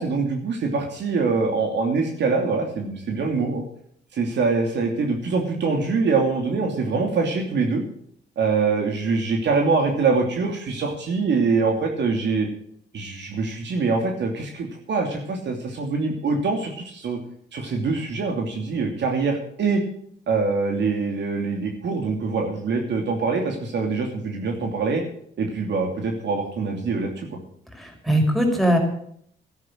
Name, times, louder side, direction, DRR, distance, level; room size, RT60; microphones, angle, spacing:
voice 1, 0.0-3.6 4.1-7.8 8.4-12.5 12.9-17.2 17.5-19.8 20.3-25.0 25.4-27.3, right 4 dB, 65° right, 2 dB, 2.8 m, -24 dB
voice 2, 27.8-28.8, equal, ahead, 2 dB, 4.5 m, -20 dB
13.5 x 10.5 x 6.4 m, 0.66 s
cardioid pair, 90°, 20 cm